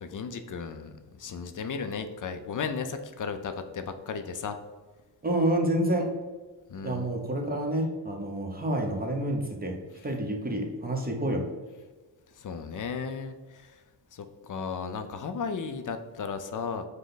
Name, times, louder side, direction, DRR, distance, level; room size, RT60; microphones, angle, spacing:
voice 1, 0.0-4.6 6.7-7.1 12.4-13.7 14.1-16.9, left 5 dB, 45° left, 8 dB, 0.5 m, -35 dB
voice 2, 5.2-6.1 6.8-9.8 10.0-11.4, right 1 dB, 20° right, 1 dB, 0.9 m, -28 dB
5.0 x 2.2 x 4.0 m, 1.3 s
cardioid pair, 65°, 46 cm